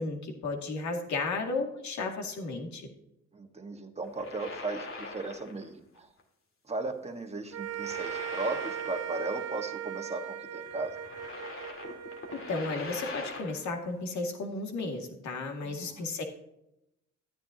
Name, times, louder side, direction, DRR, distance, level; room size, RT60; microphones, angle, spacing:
voice 1, 0.0-2.9 12.3-16.2, left 3 dB, 70° left, 3 dB, 2.2 m, -34 dB
voice 2, 3.3-6.1 6.7-10.9 15.6-16.1, right 3 dB, 20° right, 4 dB, 1.5 m, -36 dB
sound 1, 4.0-5.7 6.0-6.2 7.5-9.4 9.7-9.8 10.7-13.7, left 3 dB, 45° left, 2.3 m, -42 dB
sound 2, 7.5-13.9, right 10 dB, 55° right, 0.7 m, -39 dB
12.5 x 9.7 x 2.8 m, 0.84 s
cardioid pair, 90°, 30 cm